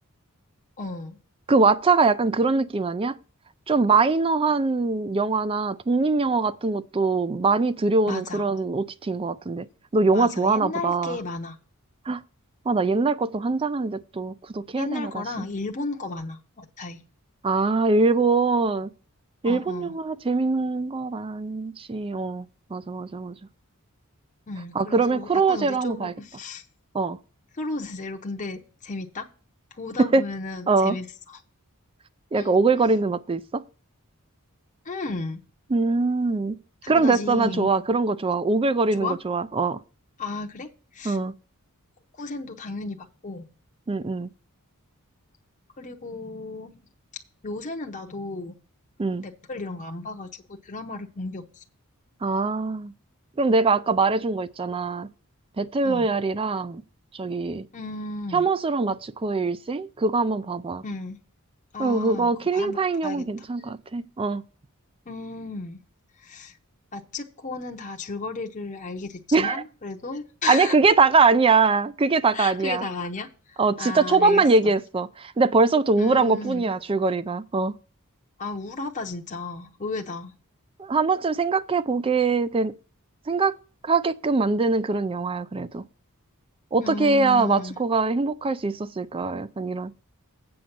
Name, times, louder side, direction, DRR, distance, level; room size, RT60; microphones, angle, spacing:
voice 1, 0.8-1.2 8.1-8.4 10.1-11.6 14.8-17.0 19.4-19.9 24.5-26.6 27.5-29.3 29.7-31.4 32.3-32.5 34.8-35.4 36.8-37.7 39.0-39.2 40.2-41.2 42.2-43.5 45.8-46.7 47.4-48.6 49.2-51.6 55.8-56.1 57.7-58.5 60.8-61.2 61.7-63.3 65.1-65.8 66.2-66.6 66.9-70.8 72.3-74.7 76.0-76.7 78.4-80.3 86.8-87.8, left 3 dB, 35° left, 0.8 m, -34 dB
voice 2, 1.5-3.2 3.7-9.7 9.9-11.2 12.1-12.2 12.7-15.4 17.4-18.9 19.4-22.5 22.7-23.4 24.7-26.1 26.9-27.2 30.0-30.3 30.7-31.0 32.3-33.6 35.7-36.6 36.9-39.8 41.0-41.3 43.9-44.3 49.0-49.2 52.2-52.9 53.4-55.1 55.6-56.8 57.1-57.7 58.3-60.8 61.8-64.4 69.3-69.6 70.5-72.8 73.6-77.7 80.8-82.7 83.3-83.6 83.8-85.8 86.7-89.9, right 3 dB, 25° right, 0.4 m, -22 dB
7.8 x 6.0 x 5.9 m
head